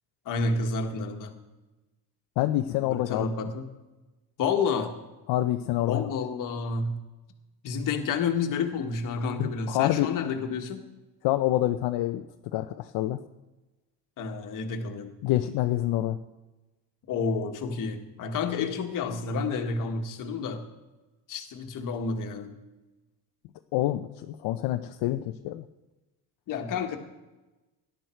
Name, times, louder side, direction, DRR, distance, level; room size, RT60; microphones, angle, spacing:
voice 1, 0.2-1.4 2.8-3.8 4.4-4.9 5.9-7.0 7.6-10.8 14.2-15.1 17.1-20.7 21.3-22.5 26.5-27.0, left 4 dB, 50° left, 5 dB, 1.6 m, -30 dB
voice 2, 2.4-3.3 5.3-6.0 9.4-10.1 11.2-12.2 12.5-13.2 15.2-16.2 23.7-25.6, left 14 dB, 70° left, 7 dB, 0.7 m, -27 dB
17.5 x 11.5 x 4.5 m, 1.1 s
cardioid pair, 170°, 41 cm